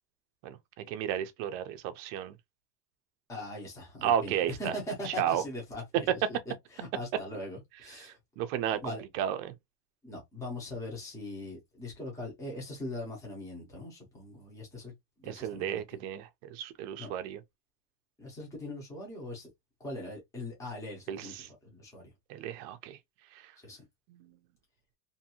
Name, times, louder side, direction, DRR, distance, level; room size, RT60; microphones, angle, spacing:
voice 1, 0.9-2.4 4.0-4.7 5.0-5.4 7.9-9.5 15.2-17.4 21.1-21.5 22.3-23.0 23.3-23.5 24.1-24.3, right 10 dB, 50° right, 0.6 m, -33 dB
voice 2, 3.3-4.3 4.6-6.4 6.7-8.2 8.8-9.0 10.0-14.9 15.2-16.1 17.0-17.1 18.2-19.5 19.8-22.1 23.6-23.8, left 1 dB, 5° left, 0.7 m, -41 dB
2.7 x 2.6 x 2.8 m
cardioid pair, 175°, 49 cm